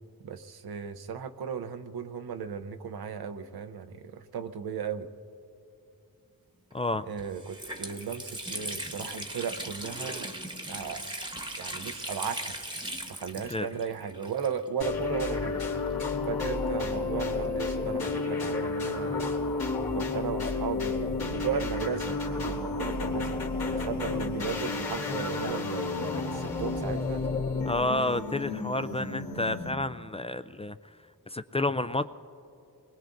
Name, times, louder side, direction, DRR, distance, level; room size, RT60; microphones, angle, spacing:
voice 1, 0.2-5.1 7.1-10.3 10.7-11.2 11.6-12.5 13.1-15.7 16.3-19.3 19.9-23.4 23.7-27.2, right 7 dB, 90° right, 9 dB, 0.7 m, -36 dB
voice 2, 6.7-7.1 13.5-13.7 27.6-31.0 31.3-32.1, left 2 dB, 15° left, 12 dB, 0.3 m, -30 dB
Water tap faucet, 6.7-6.8 7.2-14.9 15.2-15.3 16.1-17.6, right 1 dB, 10° right, 1.1 m, -39 dB
sound 1, 14.8-29.9, left 3 dB, 75° left, 2.4 m, -31 dB
26.0 x 21.0 x 2.6 m, 2.6 s
cardioid pair, 65°, 36 cm